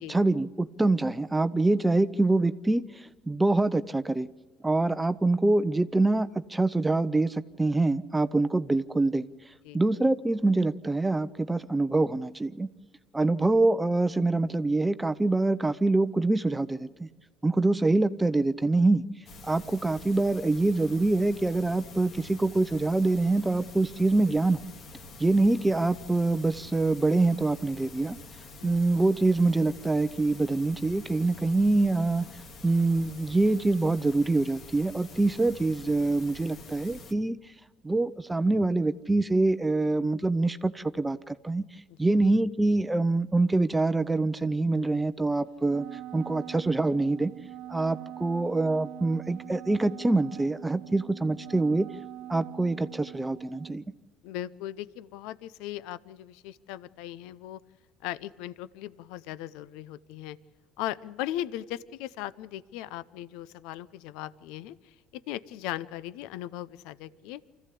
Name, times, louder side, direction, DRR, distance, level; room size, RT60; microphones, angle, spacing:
voice 1, 0.1-4.3 4.6-9.3 9.7-12.7 13.1-17.1 17.4-19.0 19.4-24.6 25.2-28.2 28.6-32.3 32.6-37.4 37.8-41.6 42.0-45.9 46.1-47.3 47.7-51.9 52.3-53.8, right 2 dB, 10° right, 12 dB, 0.7 m, -25 dB
sound 1, 19.3-37.1, left 3 dB, 50° left, 2.3 m, -47 dB
Wind instrument woodwind instrument, 45.7-53.8, right 13 dB, 65° right, 0.7 m, -43 dB
voice 2, 48.2-48.5 54.2-57.6 58.0-60.4 60.8-67.4, left 13 dB, 75° left, 18 dB, 0.6 m, -38 dB
25.0 x 15.0 x 8.4 m, 1.4 s
supercardioid pair, 90°, 0 cm